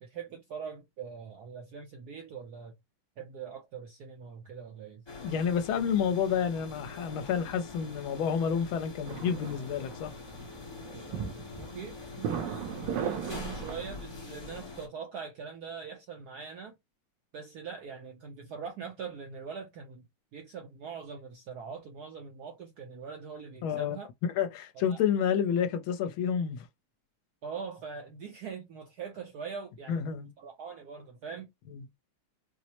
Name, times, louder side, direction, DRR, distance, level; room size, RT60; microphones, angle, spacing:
voice 1, 0.0-2.7 3.2-5.0 11.6-16.7 17.3-20.1 20.3-24.1 24.9-25.0 27.4-31.5, right 6 dB, 70° right, 0.9 m, -42 dB
sound 1, 5.1-14.9, left 3 dB, 40° left, 0.3 m, -44 dB
voice 2, 5.2-10.1 23.6-24.0 24.2-26.7 29.9-30.3 31.7-31.9, left 7 dB, 75° left, 1.4 m, -29 dB
sound 2, 9.0-14.0, right 8 dB, 85° right, 1.6 m, -37 dB
4.5 x 2.0 x 2.8 m
omnidirectional pair, 2.3 m